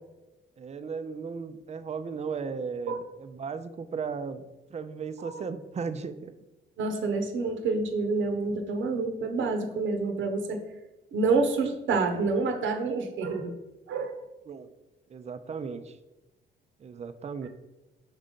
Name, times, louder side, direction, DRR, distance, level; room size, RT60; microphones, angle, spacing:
voice 1, 0.6-4.4 4.7-6.3 14.5-14.7 15.1-16.0 16.8-17.5, right 5 dB, 35° right, 11 dB, 0.5 m, -36 dB
voice 2, 6.8-10.6 11.1-13.5 13.9-14.2, right 3 dB, 75° right, 4 dB, 0.9 m, -28 dB
5.5 x 3.7 x 5.2 m, 1.0 s
cardioid pair, 90°, 20 cm